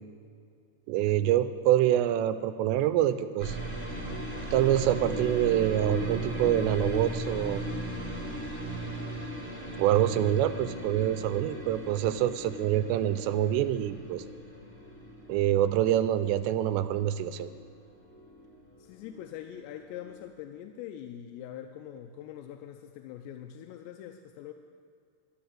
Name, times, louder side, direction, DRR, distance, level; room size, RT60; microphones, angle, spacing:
voice 1, 0.9-3.6 4.5-7.6 9.8-14.2 15.3-17.5, right 12 dB, 90° right, 12 dB, 2.8 m, -26 dB
sound 1, 3.4-19.2 19.5-20.2, right 1 dB, 5° left, 0.9 m, -37 dB
voice 2, 18.8-24.5, left 10 dB, 90° left, 5 dB, 2.8 m, -43 dB
13.0 x 9.3 x 7.3 m, 2.2 s
omnidirectional pair, 4.9 m